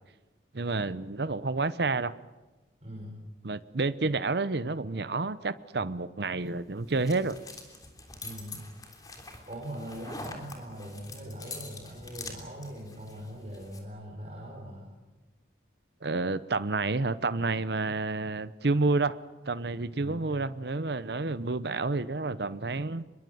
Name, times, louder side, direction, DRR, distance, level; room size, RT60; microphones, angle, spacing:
voice 1, 0.5-2.1 3.4-7.4 16.0-19.2 19.5-23.0, right 3 dB, 65° right, 15 dB, 0.8 m, -29 dB
voice 2, 2.8-3.2 8.2-8.7 9.2-14.9 19.9-20.3, equal, 35° right, -3 dB, 5.3 m, -42 dB
sound 1, 6.4-13.8, left 3 dB, 20° left, 3.4 m, -45 dB
25.5 x 22.5 x 7.9 m, 1.2 s
head